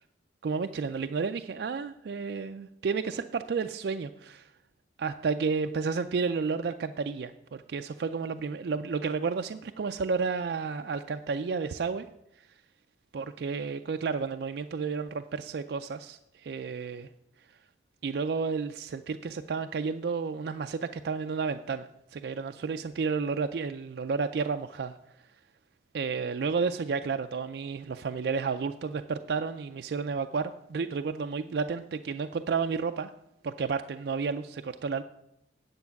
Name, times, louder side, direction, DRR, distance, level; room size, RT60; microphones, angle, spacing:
voice 1, 0.4-4.5 5.0-12.1 13.1-17.1 18.0-25.0 25.9-33.1 33.4-35.0, right 5 dB, 60° right, 7 dB, 0.4 m, -31 dB
9.5 x 7.8 x 5.8 m, 0.82 s
head